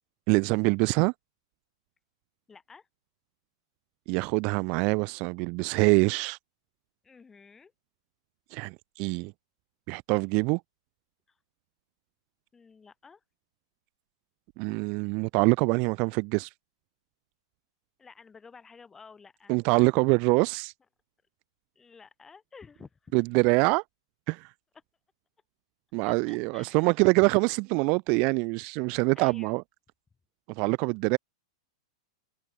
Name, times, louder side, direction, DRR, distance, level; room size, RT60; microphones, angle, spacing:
voice 1, 0.3-1.1 4.1-6.4 8.5-9.3 9.9-10.6 14.6-16.5 19.5-20.7 23.1-23.8 24.3-24.5 25.9-29.6 30.6-31.2, right 31 dB, 45° right, 0.5 m, -25 dB
voice 2, 2.5-2.9 7.0-7.7 11.3-11.4 12.5-13.2 18.0-19.9 21.8-23.1 26.0-26.9 29.1-29.6, left 5 dB, 15° left, 4.3 m, -52 dB
figure-of-eight pair, 100°, 3 cm